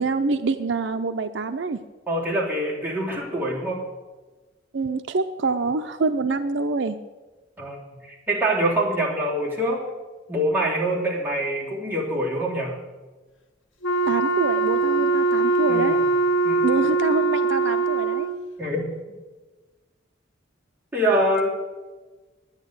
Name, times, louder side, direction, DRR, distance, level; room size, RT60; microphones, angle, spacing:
voice 1, 0.0-1.8 4.7-7.0 14.1-16.0 16.6-18.3, right 3 dB, 65° right, 8 dB, 0.5 m, -26 dB
voice 2, 2.1-3.8 7.6-7.8 8.0-9.9 10.3-12.8 15.7-15.8 16.4-16.7 18.6-18.8 20.9-21.5, right 1 dB, 10° right, -5 dB, 3.1 m, -24 dB
Wind instrument woodwind instrument, 13.8-18.5, right 3 dB, 85° left, 1.0 m, -22 dB
11.0 x 9.3 x 8.1 m, 1.2 s
head